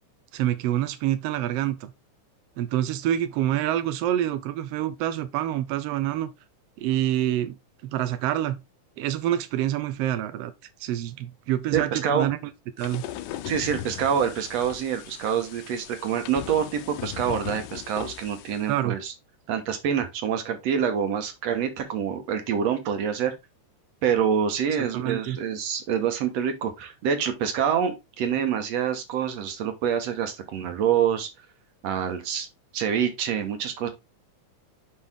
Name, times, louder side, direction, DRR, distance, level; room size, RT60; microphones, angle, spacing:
voice 1, 0.3-1.9 2.6-6.3 6.8-7.6 7.8-8.6 9.0-10.5 10.8-12.4 12.8-13.0 18.7-19.0 24.8-25.4, right 12 dB, 80° right, 1.4 m, -27 dB
voice 2, 11.7-12.3 13.5-19.1 19.5-23.4 24.0-31.3 31.8-32.5 32.7-33.9, right 8 dB, 60° right, 2.3 m, -26 dB
sound 1, 12.8-18.7, left 12 dB, 85° left, 2.1 m, -38 dB
6.5 x 5.2 x 3.7 m
omnidirectional pair, 3.5 m